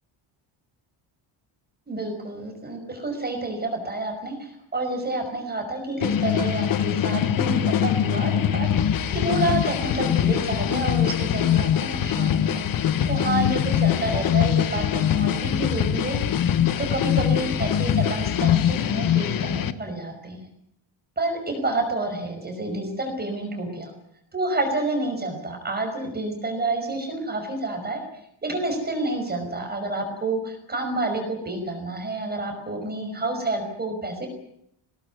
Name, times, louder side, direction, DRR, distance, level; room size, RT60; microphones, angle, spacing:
voice 1, 1.9-8.9 9.1-16.2 16.8-20.4 21.2-23.9 24.3-28.0 28.4-34.3, right 2 dB, 20° right, 4 dB, 5.5 m, -29 dB
sound 1, 6.0-19.7, left 9 dB, 45° left, 1.3 m, -23 dB
21.5 x 19.0 x 9.5 m, 0.73 s
cardioid pair, 165°, 47 cm